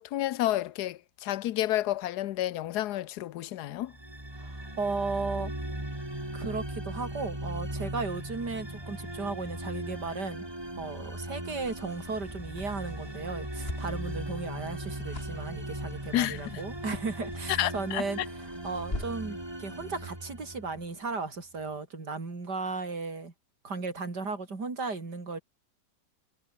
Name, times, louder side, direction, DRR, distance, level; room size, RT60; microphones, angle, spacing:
voice 1, 0.0-3.9 16.1-16.6 17.5-18.0, left 14 dB, 70° left, 1.2 m, -30 dB
sound 1, 3.9-21.0, right 1 dB, 15° right, 3.7 m, -38 dB
voice 2, 4.4-5.5 6.3-10.5 10.8-23.3 23.6-25.4, right 3 dB, 65° right, 4.6 m, -35 dB
sound 2, 11.3-19.4, left 1 dB, 30° left, 6.3 m, -45 dB
omnidirectional pair, 1.9 m